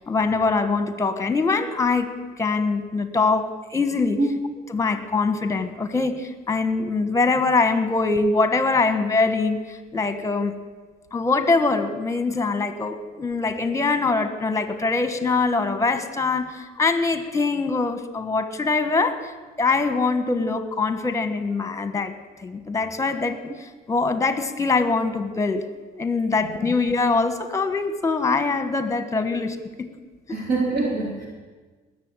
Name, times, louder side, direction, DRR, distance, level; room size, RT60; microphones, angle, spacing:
voice 1, 0.1-4.2 4.7-10.6 11.1-19.3 19.6-22.1 22.4-25.7 26.0-29.9 30.3-30.4, left 3 dB, 20° left, 10 dB, 1.3 m, -23 dB
voice 2, 30.3-31.3, right 3 dB, 60° right, -2 dB, 3.8 m, -24 dB
19.5 x 7.0 x 9.0 m, 1.4 s
cardioid pair, 110°, 17 cm